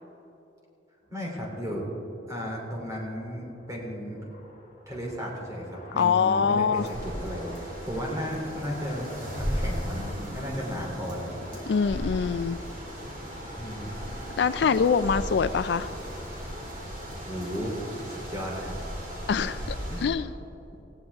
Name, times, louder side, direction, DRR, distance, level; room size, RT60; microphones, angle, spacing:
sound 1, 1.0-18.6, equal, 40° left, 2.9 m, -48 dB
voice 1, 1.1-1.9 2.3-4.2 4.9-9.1 9.3-11.3 13.6-14.1 17.2-17.8 18.0-18.8 19.9-20.0, equal, 20° right, -2 dB, 3.3 m, -34 dB
voice 2, 5.9-6.9 11.7-12.6 14.4-15.9 19.3-20.3, left 6 dB, 65° left, 13 dB, 0.4 m, -24 dB
sound 2, 6.7-20.1, equal, 50° right, 4.0 m, -36 dB
19.5 x 16.0 x 3.6 m, 2.9 s
head